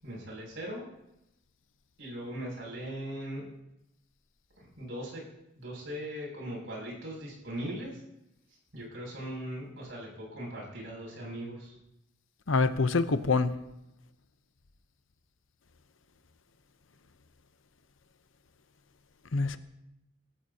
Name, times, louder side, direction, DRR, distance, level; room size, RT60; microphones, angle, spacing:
voice 1, 0.0-0.8 2.0-3.5 4.6-5.2 5.6-8.0 8.5-11.8, right 1 dB, 75° right, -3 dB, 6.8 m, -39 dB
voice 2, 12.5-13.5 19.3-19.6, left 3 dB, 85° left, 11 dB, 0.8 m, -25 dB
23.5 x 14.0 x 2.9 m, 0.86 s
head